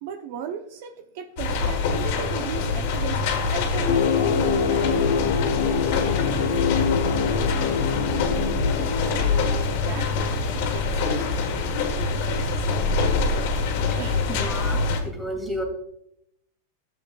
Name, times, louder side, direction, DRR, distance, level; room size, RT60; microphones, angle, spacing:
voice 1, 0.0-5.3 7.7-8.2 8.9-12.3 13.9-14.2, right 9 dB, 60° right, 7 dB, 0.6 m, -37 dB
sound 1, 1.4-15.0, left 4 dB, 60° left, 1.4 m, -25 dB
sound 2, 3.9-9.6, left 7 dB, 80° left, 0.8 m, -25 dB
Bowed string instrument, 4.7-10.7, left 3 dB, 10° left, 1.5 m, -45 dB
voice 2, 14.3-15.6, equal, 5° right, 2 dB, 2.0 m, -31 dB
12.0 x 7.5 x 2.3 m, 0.77 s
supercardioid pair, 140°, 0 cm